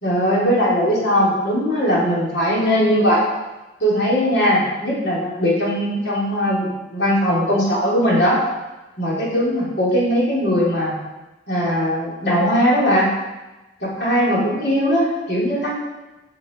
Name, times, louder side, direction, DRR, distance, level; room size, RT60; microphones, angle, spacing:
voice 1, 0.0-3.2 3.8-8.4 9.0-10.9 11.5-13.1 13.8-15.8, equal, 80° left, -5 dB, 3.4 m, -19 dB
8.7 x 6.0 x 5.2 m, 1.1 s
head